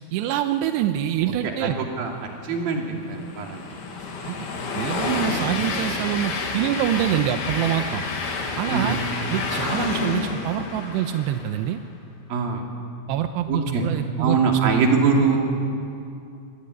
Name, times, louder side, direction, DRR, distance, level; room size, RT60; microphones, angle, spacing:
voice 1, 0.1-1.8 4.3-4.5 4.7-8.0 8.6-9.0 9.3-11.8 13.1-14.8, right 11 dB, 80° right, 7 dB, 2.7 m, -25 dB
voice 2, 1.4-2.1 2.4-3.7 8.7-9.0 12.3-12.7 13.5-13.8 14.2-15.4, right 5 dB, 50° right, 1 dB, 4.1 m, -23 dB
Train, 2.3-11.7, left 4 dB, 55° left, 4.3 m, -29 dB
25.0 x 23.5 x 9.6 m, 2.6 s
omnidirectional pair, 5.7 m